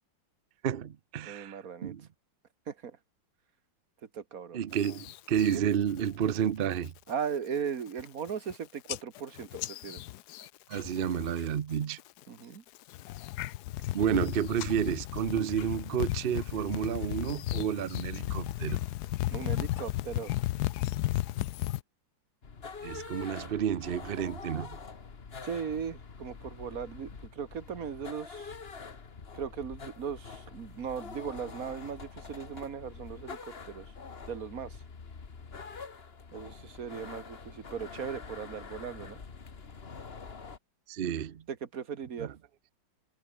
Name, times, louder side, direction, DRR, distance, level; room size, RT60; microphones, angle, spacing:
voice 1, 0.6-2.1 4.5-6.9 10.7-12.0 13.9-18.8 22.8-24.8 40.9-41.4 42.2-42.3, right 9 dB, 65° right, 0.5 m, -31 dB
voice 2, 1.3-2.0 2.7-3.0 4.1-4.6 5.5-5.7 7.1-10.0 12.3-12.6 19.3-20.3 25.4-28.6 29.3-33.9 34.3-34.8 36.3-39.2 41.5-42.3, right 7 dB, 50° right, 1.8 m, -38 dB
sound 1, 4.8-5.6 6.0-6.4 6.7-7.1 7.6-7.7 7.9-8.5 8.9-11.4 11.7-12.2 12.7-21.8, left 15 dB, 75° left, 1.0 m, -35 dB
sound 2, 22.4-40.6, left 5 dB, 35° left, 1.6 m, -45 dB
omnidirectional pair, 2.0 m